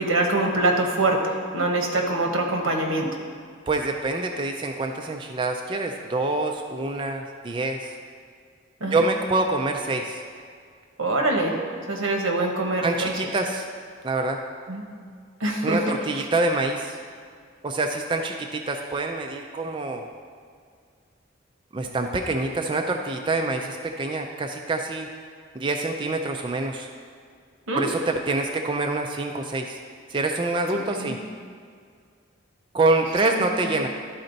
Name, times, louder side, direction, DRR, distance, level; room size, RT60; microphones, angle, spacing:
voice 1, 0.0-3.1 8.8-9.0 11.0-11.6 11.9-13.2 14.7-14.8 15.4-15.8 27.7-27.9 30.7-31.2 33.2-33.8, right 2 dB, 85° right, 2 dB, 1.1 m, -24 dB
voice 2, 3.7-8.0 8.9-10.2 12.8-13.7 14.0-14.4 15.6-17.0 17.6-20.0 21.7-25.1 25.5-26.9 27.7-29.8 30.1-31.2 32.7-33.9, right 2 dB, 25° right, 3 dB, 0.3 m, -26 dB
12.0 x 4.2 x 3.9 m, 2.1 s
head